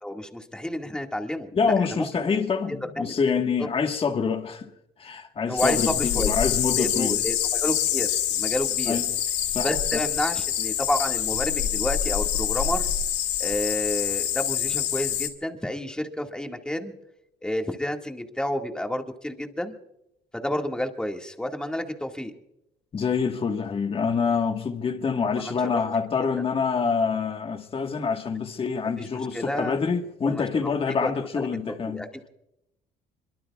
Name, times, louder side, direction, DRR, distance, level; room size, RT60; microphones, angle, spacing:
voice 1, 0.0-1.5 1.9-2.4 3.0-3.1 3.6-3.7 5.5-6.3 6.8-9.0 9.6-12.9 13.4-16.9 17.4-19.7 20.3-22.3 25.3-25.8 29.0-29.8 30.2-30.4 31.0-31.1 31.4-32.3, left 1 dB, 5° left, 2.0 m, -30 dB
voice 2, 1.5-4.7 5.0-7.2 8.9-9.1 9.5-9.7 22.9-32.1, left 5 dB, 35° left, 1.6 m, -26 dB
sound 1, 5.6-15.3, left 10 dB, 90° left, 2.1 m, -26 dB
25.5 x 23.0 x 2.4 m
cardioid pair, 110°, 17 cm